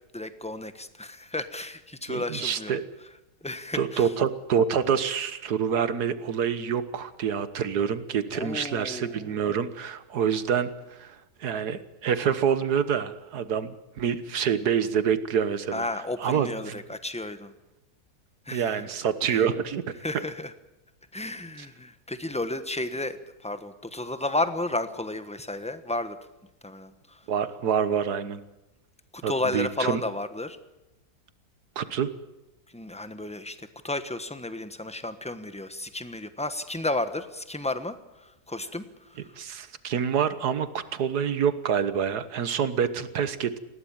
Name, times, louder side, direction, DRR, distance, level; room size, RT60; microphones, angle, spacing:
voice 1, 0.1-2.8 3.4-4.1 8.3-9.4 15.7-17.5 18.5-18.9 19.3-19.4 20.0-20.5 21.1-23.2 23.4-26.2 26.6-27.2 29.1-30.6 32.7-37.9 38.2-39.2, left 2 dB, 5° left, 10 dB, 1.0 m, -32 dB
voice 2, 2.1-2.8 3.7-15.8 16.2-16.8 18.5-20.2 21.6-21.7 27.3-28.4 29.2-30.0 31.7-32.1 39.4-43.6, right 7 dB, 75° right, 13 dB, 1.7 m, -27 dB
20.0 x 17.0 x 8.8 m, 0.95 s
omnidirectional pair, 1.7 m